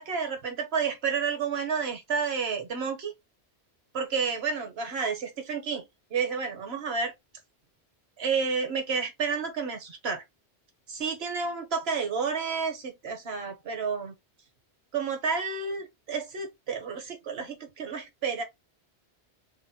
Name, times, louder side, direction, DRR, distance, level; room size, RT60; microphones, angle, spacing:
voice 1, 0.0-3.1 3.9-5.8 6.1-7.1 8.2-10.2 10.9-14.1 14.9-18.4, right 5 dB, 70° right, 1.3 m, -30 dB
3.5 x 2.1 x 4.1 m
omnidirectional pair, 1.1 m